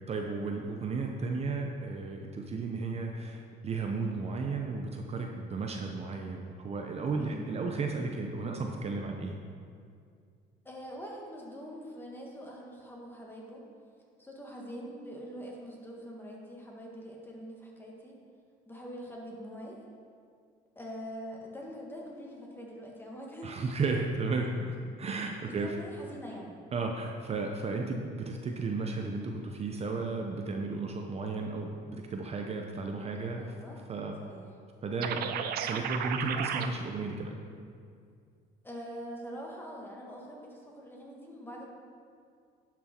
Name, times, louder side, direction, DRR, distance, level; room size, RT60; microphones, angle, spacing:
voice 1, 0.1-9.3 23.4-25.7 26.7-33.6 33.9-34.2 34.8-37.4, right 3 dB, 40° right, 2 dB, 0.8 m, -34 dB
voice 2, 7.1-7.5 10.7-13.6 14.2-18.2 18.7-19.8 20.8-23.6 25.4-26.5 33.4-33.8 34.2-34.5 38.6-41.7, equal, 10° left, -2 dB, 1.8 m, -44 dB
sound 1, 35.0-36.7, right 8 dB, 65° right, 0.7 m, -33 dB
11.0 x 6.2 x 4.4 m, 2.3 s
cardioid pair, 110°, 17 cm